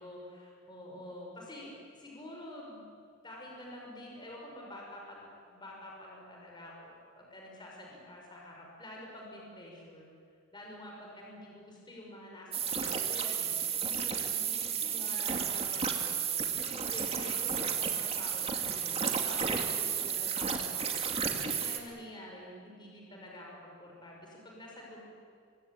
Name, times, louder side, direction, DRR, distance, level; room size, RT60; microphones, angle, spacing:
voice 1, 0.0-2.9 3.2-10.1 10.5-13.5 13.8-16.4 16.9-25.0, left 1 dB, 20° left, -2 dB, 6.2 m, -48 dB
sound 1, 12.5-21.8, right 7 dB, 30° right, 2.4 m, -32 dB
25.5 x 25.0 x 8.8 m, 2.3 s
head